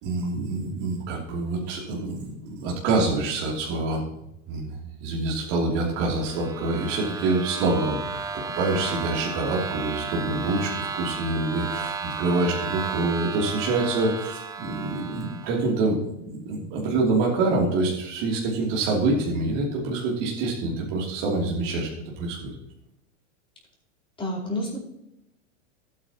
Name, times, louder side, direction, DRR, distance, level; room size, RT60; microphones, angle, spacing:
voice 1, 0.0-4.0 4.5-8.0 8.3-21.9 22.2-22.5, right 3 dB, 50° right, -3 dB, 3.0 m, -26 dB
sound 1, 6.0-15.7, right 5 dB, 10° right, 0.4 m, -34 dB
voice 2, 24.2-24.8, left 1 dB, 15° left, -3 dB, 4.4 m, -29 dB
14.5 x 9.2 x 2.9 m, 0.83 s
hypercardioid pair, 125°, 37 cm